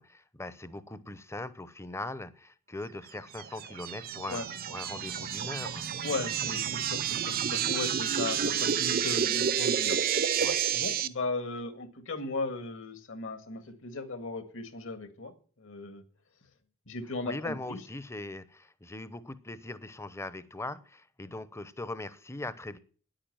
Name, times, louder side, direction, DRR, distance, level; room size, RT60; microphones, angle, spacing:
voice 1, 0.0-5.9 10.4-10.6 17.2-22.8, left 2 dB, 15° left, 0.7 m, -40 dB
sound 1, 3.3-11.1, right 8 dB, 45° right, 0.7 m, -30 dB
voice 2, 6.0-10.3 10.7-15.3 15.6-16.0 16.9-17.8, left 3 dB, 65° left, 1.8 m, -37 dB
9.9 x 8.9 x 9.1 m
head